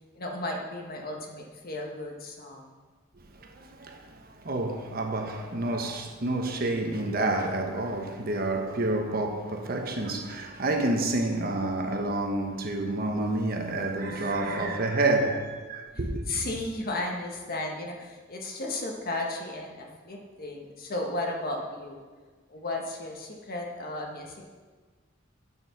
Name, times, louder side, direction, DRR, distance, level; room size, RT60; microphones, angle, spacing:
voice 1, 0.1-2.7 14.1-14.7 15.9-22.0 22.5-24.4, left 2 dB, 50° left, 1.5 m, -35 dB
voice 2, 3.4-16.2, right 2 dB, 50° right, 1.1 m, -29 dB
8.6 x 7.0 x 5.9 m
head